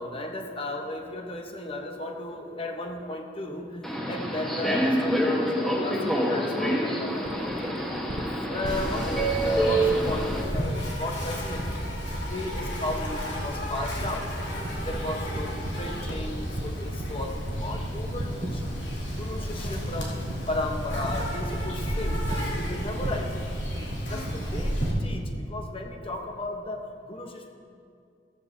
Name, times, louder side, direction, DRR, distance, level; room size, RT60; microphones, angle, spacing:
voice 1, 0.0-7.7 8.1-8.2 8.5-11.8 12.2-14.5 14.9-18.8 19.2-20.2 20.5-23.3 24.1-27.5, left 2 dB, 30° left, 3 dB, 1.0 m, -35 dB
Subway metro underground, 3.8-10.4, right 1 dB, ahead, 1.2 m, -26 dB
sound 1, 7.2-25.0, right 1 dB, 45° right, 0.8 m, -38 dB
Insect, 8.7-24.9, equal, 75° left, 2.5 m, -32 dB
14.5 x 14.0 x 2.8 m, 2.4 s
head